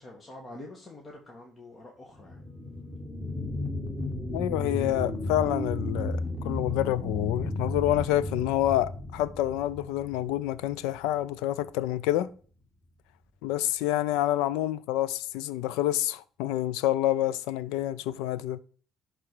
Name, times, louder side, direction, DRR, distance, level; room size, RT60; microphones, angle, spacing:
voice 1, 0.0-2.4, left 1 dB, 35° left, 1.8 m, -46 dB
sound 1, 2.1-11.2 11.7-11.8, left 1 dB, 5° left, 2.3 m, -34 dB
voice 2, 4.3-12.3 13.4-18.6, left 13 dB, 85° left, 0.4 m, -28 dB
11.0 x 4.1 x 4.9 m
supercardioid pair, 75°, 0 cm